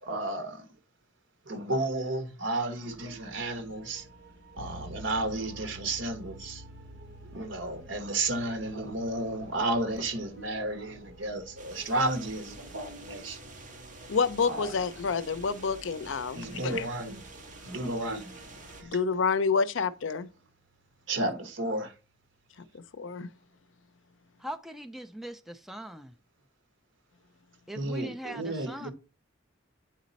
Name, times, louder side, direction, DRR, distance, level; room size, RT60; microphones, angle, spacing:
voice 1, 0.0-0.7 1.4-4.1 4.5-6.6 7.3-13.4 14.5-14.7 16.3-17.2 17.6-18.4 18.8-18.9 21.1-21.9 27.8-28.9, right 2 dB, 75° right, 1.3 m, -32 dB
sound 1, 2.9-18.9, right 1 dB, 55° right, 3.1 m, -53 dB
sound 2, 4.6-19.0, equal, 90° right, 1.5 m, -51 dB
sound 3, 11.6-18.8, right 2 dB, 40° right, 1.6 m, -49 dB
voice 2, 14.1-16.9 18.8-20.3 22.7-23.3, left 5 dB, 75° left, 0.5 m, -28 dB
voice 3, 24.4-26.2 27.7-28.9, right 1 dB, ahead, 0.4 m, -40 dB
8.7 x 4.2 x 4.1 m
head